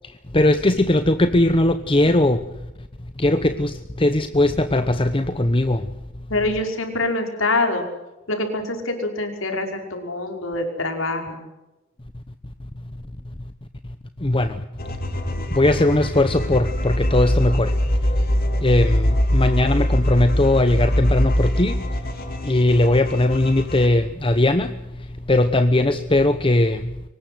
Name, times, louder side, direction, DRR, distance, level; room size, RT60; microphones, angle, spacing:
voice 1, 0.0-2.5 3.2-5.9 14.2-14.6 15.5-17.8 18.6-22.1 22.4-27.0, left 1 dB, 25° left, 10 dB, 0.9 m, -19 dB
voice 2, 6.3-7.8 8.3-11.4, left 2 dB, 65° left, 4 dB, 5.5 m, -25 dB
sound 1, 14.8-23.9, equal, 45° left, 4.0 m, -23 dB
24.0 x 19.5 x 8.0 m, 1.0 s
head